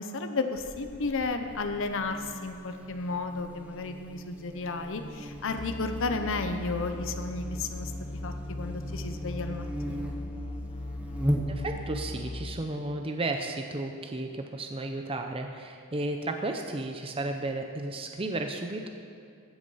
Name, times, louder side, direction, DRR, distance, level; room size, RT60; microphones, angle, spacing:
voice 1, 0.0-7.9 8.2-10.1, left 3 dB, 60° left, 6 dB, 0.8 m, -33 dB
Buzz, 0.6-12.0, equal, 5° right, 1.1 m, -38 dB
sound 1, 5.6-12.6, left 2 dB, 25° left, 0.4 m, -38 dB
voice 2, 11.5-18.9, right 2 dB, 25° right, 4 dB, 0.7 m, -33 dB
15.5 x 8.3 x 5.6 m, 2.4 s
head